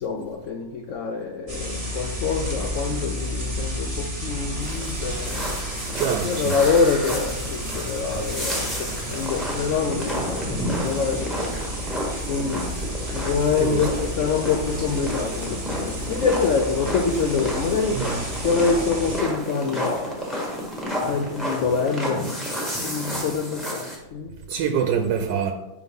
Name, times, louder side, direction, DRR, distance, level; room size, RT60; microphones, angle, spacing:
voice 1, 0.0-5.4 6.2-11.5 12.3-12.6 13.1-18.0 18.4-20.2 21.1-22.3 22.8-24.3, left 5 dB, 90° left, 2 dB, 0.6 m, -25 dB
sound 1, 1.5-19.2, equal, 20° right, 1.4 m, -31 dB
sound 2, 4.6-24.0, equal, ahead, 1.0 m, -31 dB
voice 2, 6.0-6.5 13.1-13.2 13.6-13.9 17.9-18.2 23.1-23.3 24.5-25.5, right 7 dB, 80° right, 4 dB, 1.2 m, -25 dB
4.8 x 3.9 x 5.3 m, 0.95 s
omnidirectional pair, 1.9 m